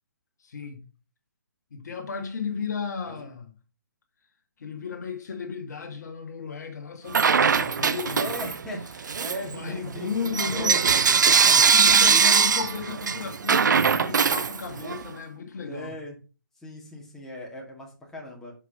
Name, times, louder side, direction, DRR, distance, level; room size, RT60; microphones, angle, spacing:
voice 1, 0.4-0.8 1.7-3.5 4.6-8.3 9.4-10.8 11.7-16.0, left 6 dB, 60° left, 1.8 m, -34 dB
Bell / Coin (dropping), 7.1-8.7 9.0-15.0, right 6 dB, 65° right, 0.5 m, -21 dB
voice 2, 8.2-12.2 15.6-16.2 16.6-18.5, equal, 5° left, 2.1 m, -38 dB
6.5 x 5.1 x 5.2 m
figure-of-eight pair, 140°, 11 cm